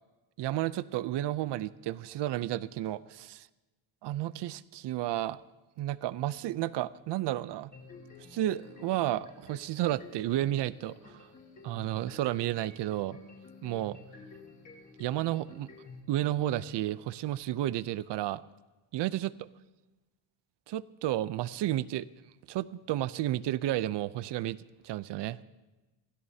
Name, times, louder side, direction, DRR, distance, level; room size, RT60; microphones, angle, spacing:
voice 1, 0.4-3.5 4.0-5.4 5.8-7.7 8.3-11.2 11.6-13.2 13.6-14.0 15.0-15.7 16.1-18.4 18.9-19.5 20.7-22.1 22.5-24.6 24.8-25.4, right 14 dB, 60° right, 17 dB, 0.6 m, -32 dB
sound 1, 7.7-16.0, left 4 dB, 40° left, 4.6 m, -51 dB
26.5 x 16.0 x 2.8 m, 1.1 s
cardioid pair, 140°, 47 cm